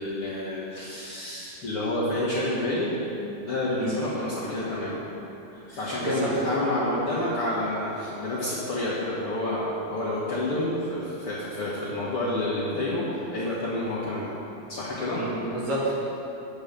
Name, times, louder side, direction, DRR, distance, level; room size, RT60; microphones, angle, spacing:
voice 1, 0.0-3.0 3.4-5.0 5.5-14.3 14.7-15.3, left 1 dB, 50° left, -10 dB, 1.8 m, -29 dB
voice 2, 15.1-15.9, right 2 dB, 55° right, -6 dB, 2.9 m, -30 dB
9.5 x 7.3 x 6.8 m, 2.8 s
omnidirectional pair, 4.4 m